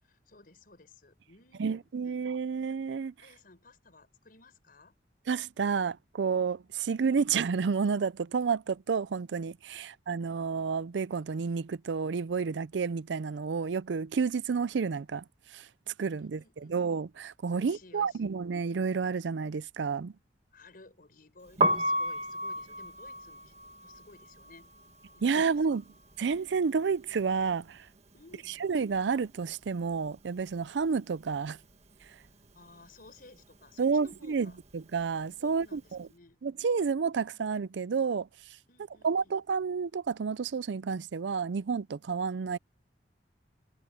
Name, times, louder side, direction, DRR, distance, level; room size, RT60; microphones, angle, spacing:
voice 1, 0.0-1.9 3.2-5.0 9.7-9.9 15.9-16.8 17.5-18.4 20.5-23.6 23.8-24.7 25.1-25.8 28.1-28.6 32.2-34.6 35.4-36.4 38.7-39.4, left 3 dB, 55° left, 5.4 m, -56 dB
voice 2, 1.6-3.1 5.3-15.2 15.5-15.7 16.0-20.1 25.2-25.8 26.2-27.8 28.6-31.6 33.8-36.1 36.4-38.3 39.0-42.6, right 5 dB, 80° right, 0.5 m, -30 dB
Piano, 21.5-27.4 27.7-29.3 29.5-36.0, right 1 dB, 35° right, 1.7 m, -34 dB
head